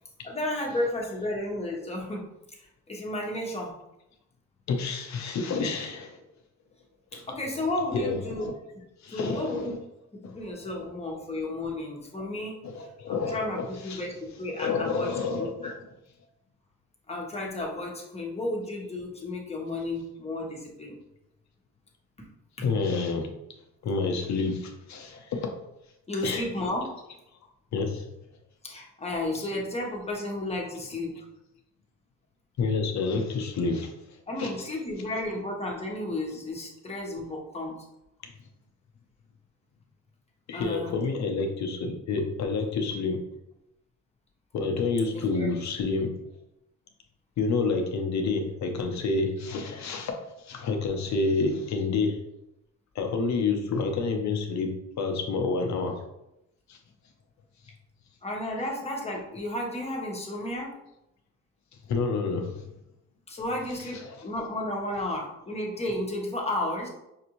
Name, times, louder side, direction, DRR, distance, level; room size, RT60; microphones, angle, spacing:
voice 1, 0.2-2.2 2.6-3.8 7.1-8.5 9.1-9.7 10.2-12.6 13.1-15.1 15.4-15.7 17.1-21.0 26.1-26.9 28.6-31.2 34.3-37.9 40.5-41.0 45.1-45.5 58.2-60.8 63.3-66.9, left 1 dB, 20° left, -1 dB, 1.1 m, -33 dB
voice 2, 4.7-6.2 7.1-7.5 7.8-8.4 9.0-9.8 10.2-10.3 10.6-10.9 12.6-14.0 14.3-15.7 22.6-23.3 23.8-25.5 26.2-26.6 27.7-28.1 29.4-29.5 32.6-33.9 34.4-34.8 40.5-43.2 44.5-46.2 47.4-52.2 52.9-56.0 56.7-56.8 61.9-62.6 63.4-64.1, left 4 dB, 65° left, 3 dB, 0.7 m, -29 dB
5.7 x 2.6 x 2.9 m, 0.86 s
cardioid pair, 90°, 30 cm